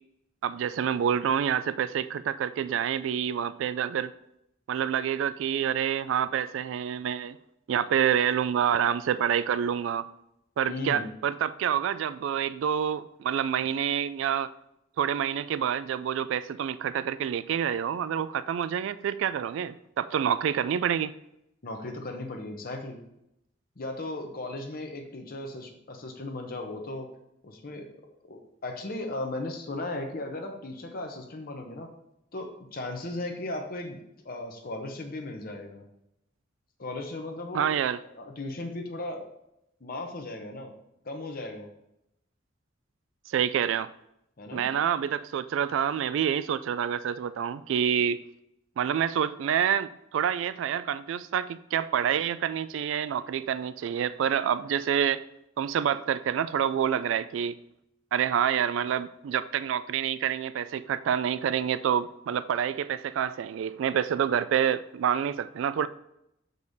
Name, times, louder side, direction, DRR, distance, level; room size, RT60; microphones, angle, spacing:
voice 1, 0.4-4.1 4.7-7.4 7.7-10.0 10.6-14.5 15.0-21.1 37.5-38.0 43.3-43.9 44.5-48.2 48.8-55.2 55.6-57.6 58.1-65.9, right 8 dB, 75° right, 0.3 m, -27 dB
voice 2, 10.7-11.1 21.6-23.0 23.8-27.1 27.4-31.9 32.3-35.8 36.8-37.8 38.1-39.2 39.8-40.7 41.0-41.7 44.4-44.7, left 2 dB, 50° left, 0.9 m, -36 dB
6.5 x 5.3 x 4.0 m
head